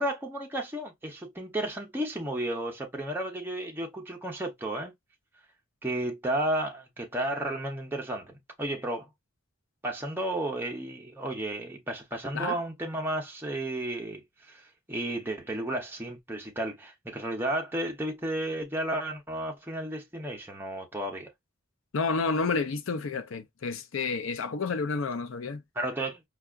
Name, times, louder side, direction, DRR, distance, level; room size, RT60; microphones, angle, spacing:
voice 1, 0.0-4.9 5.8-9.1 9.8-21.3 25.8-26.2, right 1 dB, 10° right, 0.6 m, -33 dB
voice 2, 21.9-25.6, left 4 dB, 80° left, 0.5 m, -30 dB
4.6 x 2.3 x 2.3 m
head